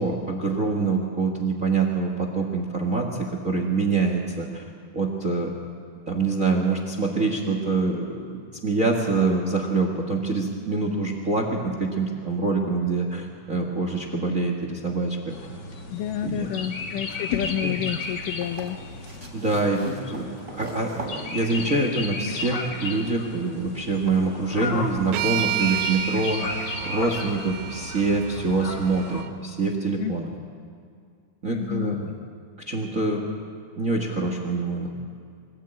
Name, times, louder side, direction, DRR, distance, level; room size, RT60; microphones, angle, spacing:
voice 1, 0.0-4.6 4.9-5.5 6.1-15.3 16.2-16.9 17.6-17.7 19.3-20.3 20.5-30.3 31.4-32.1 32.7-33.3 33.8-34.9, right 3 dB, 55° right, 3 dB, 0.9 m, -25 dB
sound 1, 15.3-29.2, left 3 dB, 45° left, 1.4 m, -34 dB
voice 2, 15.9-18.8 30.0-30.2 31.5-32.0, left 12 dB, 80° left, 10 dB, 2.0 m, -29 dB
sound 2, 18.3-22.4 23.7-23.8, right 2 dB, 20° right, 3.5 m, -40 dB
sound 3, 25.1-29.3, right 15 dB, 90° right, 2.7 m, -31 dB
23.5 x 17.0 x 8.9 m, 2.2 s
omnidirectional pair, 4.5 m